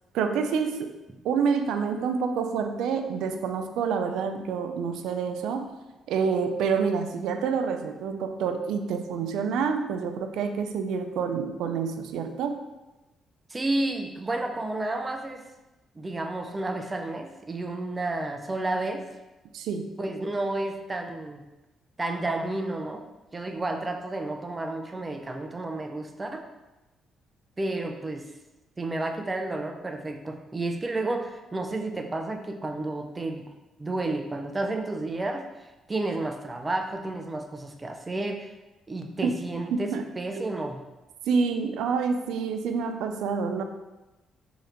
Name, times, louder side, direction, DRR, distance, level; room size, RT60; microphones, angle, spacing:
voice 1, 0.1-0.9 1.2-5.7 6.1-12.6 19.5-19.9 39.2-39.3 39.7-40.0 40.4-40.5 41.3-43.6, right 5 dB, 85° right, 7 dB, 0.3 m, -27 dB
voice 2, 13.5-15.4 15.9-19.1 20.0-21.4 22.0-26.4 27.6-28.3 28.8-33.5 33.8-38.5 38.9-40.8, right 2 dB, 25° right, 4 dB, 0.4 m, -31 dB
3.2 x 2.9 x 3.8 m, 1.1 s
cardioid pair, 90°, 0 cm